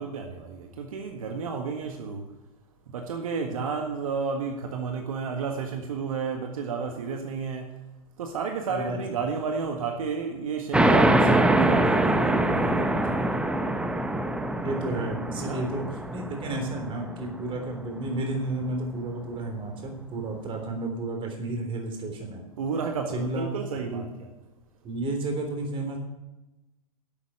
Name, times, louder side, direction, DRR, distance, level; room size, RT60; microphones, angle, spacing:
voice 1, 0.0-2.2 2.9-7.6 8.2-13.0 15.4-15.7 22.6-24.3, right 5 dB, 70° right, 3 dB, 1.7 m, -31 dB
voice 2, 8.7-9.0 14.6-22.4 23.1-23.5 23.8-24.0 24.8-26.0, right 2 dB, 30° right, 4 dB, 3.6 m, -32 dB
sound 1, 10.7-17.9, right 1 dB, 5° right, 1.0 m, -24 dB
11.5 x 8.5 x 7.0 m, 0.99 s
hypercardioid pair, 105°, 18 cm